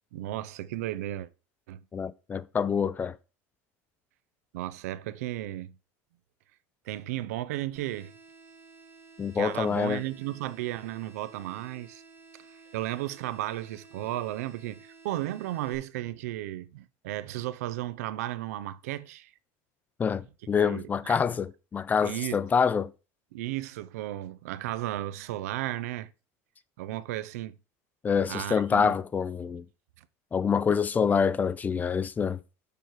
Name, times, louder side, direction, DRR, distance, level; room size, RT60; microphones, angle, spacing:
voice 1, 0.1-1.3 1.7-1.8 4.5-5.8 6.9-8.1 9.3-12.0 12.7-19.3 20.5-21.2 22.0-22.4 23.3-26.1 26.8-27.6 28.3-29.0 30.0-30.1, right 15 dB, 90° right, 0.5 m, -34 dB
voice 2, 1.9-3.2 9.2-10.0 20.0-22.9 28.0-29.6 30.3-32.4, left 6 dB, 20° left, 0.4 m, -26 dB
sound 1, 7.8-15.8, right 4 dB, 25° right, 1.2 m, -53 dB
6.9 x 4.4 x 4.7 m
supercardioid pair, 125°, 8 cm